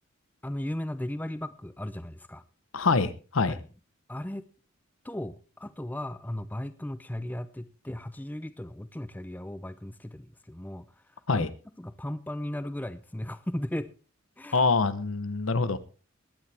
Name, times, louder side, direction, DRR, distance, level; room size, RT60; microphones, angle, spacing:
voice 1, 0.4-2.4 3.5-3.6 4.1-4.5 5.0-11.5 11.8-13.9 14.4-14.7, left 1 dB, 10° left, 13 dB, 0.5 m, -36 dB
voice 2, 2.7-3.6 11.3-11.5 14.5-15.8, left 4 dB, 80° left, 14 dB, 0.9 m, -25 dB
21.0 x 9.6 x 3.4 m, 0.35 s
head